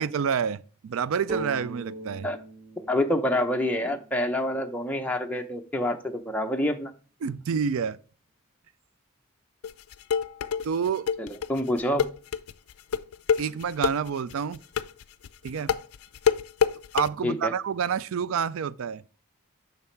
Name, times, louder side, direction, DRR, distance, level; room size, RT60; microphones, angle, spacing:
voice 1, 0.0-2.3 7.2-8.0 10.6-11.1 13.4-14.6 15.4-15.7 16.9-19.0, right 7 dB, 70° right, 0.4 m, -28 dB
sound 1, 1.3-5.0, right 2 dB, 35° right, 1.1 m, -39 dB
voice 2, 2.9-6.9 11.2-12.0 17.2-17.5, left 1 dB, 5° left, 0.6 m, -27 dB
sound 2, 9.6-17.1, left 7 dB, 80° left, 0.4 m, -26 dB
7.1 x 5.8 x 4.4 m
head